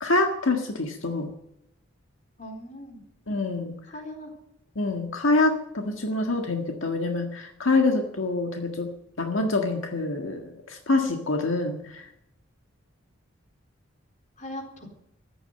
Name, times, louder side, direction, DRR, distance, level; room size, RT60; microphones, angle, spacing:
voice 1, 0.0-1.3 3.3-3.7 4.8-8.9 9.2-12.0, left 2 dB, 80° left, 4 dB, 1.7 m, -26 dB
voice 2, 2.4-3.0 3.9-4.3 14.4-14.9, left 1 dB, 40° left, 2 dB, 4.1 m, -39 dB
14.5 x 11.0 x 8.0 m, 0.82 s
head